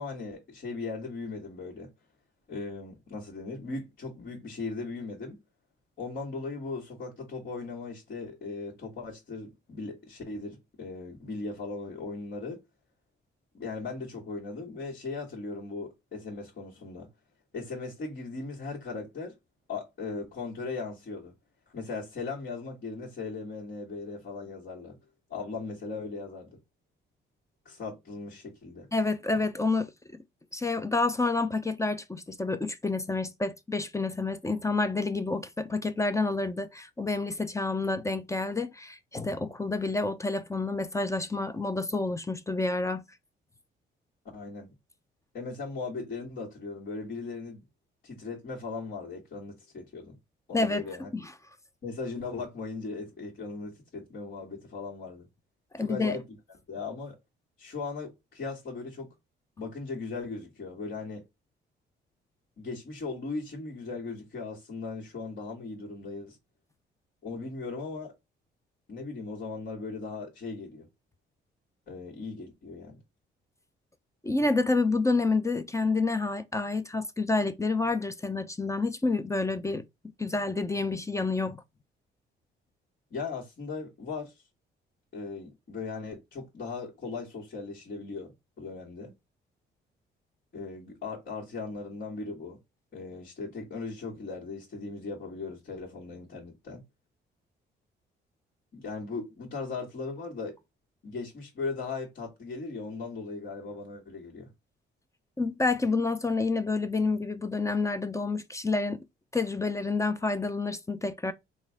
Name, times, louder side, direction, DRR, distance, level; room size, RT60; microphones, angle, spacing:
voice 1, 0.0-1.9 2.5-5.4 6.0-12.6 13.5-17.1 17.5-19.3 19.7-21.3 21.7-25.0 25.3-26.6 27.7-28.9 44.3-44.7 45.3-47.6 48.0-50.2 50.5-51.1 51.8-55.3 55.8-56.2 56.7-57.2 57.6-59.1 59.6-61.2 62.6-66.4 67.2-68.1 68.9-70.9 71.9-73.0 83.1-84.3 85.1-88.3 88.6-89.1 90.5-92.6 92.9-96.8 98.7-100.5 101.0-104.5, left 3 dB, 55° left, 1.9 m, -38 dB
voice 2, 28.9-29.9 30.5-43.0 50.5-50.8 51.1-51.3 55.7-56.2 74.2-79.8 80.2-81.6 105.4-109.0 109.3-111.3, left 3 dB, 15° left, 0.5 m, -28 dB
3.9 x 2.6 x 3.4 m
cardioid pair, 90°, 20 cm